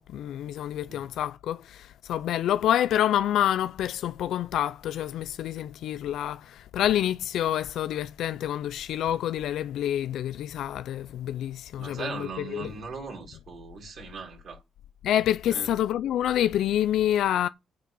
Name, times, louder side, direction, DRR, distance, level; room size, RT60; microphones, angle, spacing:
voice 1, 0.0-12.7 15.0-17.5, left 11 dB, 80° left, 0.5 m, -27 dB
voice 2, 11.8-14.6 15.5-15.8, right 5 dB, 60° right, 5.1 m, -39 dB
9.0 x 7.4 x 5.5 m
cardioid pair, 90°, 0 cm